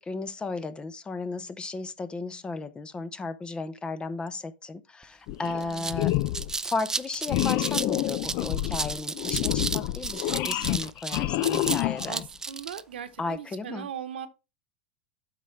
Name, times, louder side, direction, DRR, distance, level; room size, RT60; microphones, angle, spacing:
voice 1, 0.0-6.1 6.6-12.2 13.2-13.9, left 3 dB, 15° left, 0.8 m, -34 dB
sound 1, 5.0-5.1 5.4-12.8, right 3 dB, 10° right, 0.4 m, -33 dB
sound 2, 5.3-5.6 5.9-6.5 7.3-12.3, left 15 dB, 50° left, 0.6 m, -28 dB
voice 2, 5.5-6.0 12.1-14.3, right 9 dB, 80° right, 1.3 m, -39 dB
8.3 x 5.4 x 4.6 m
hypercardioid pair, 105°, 6 cm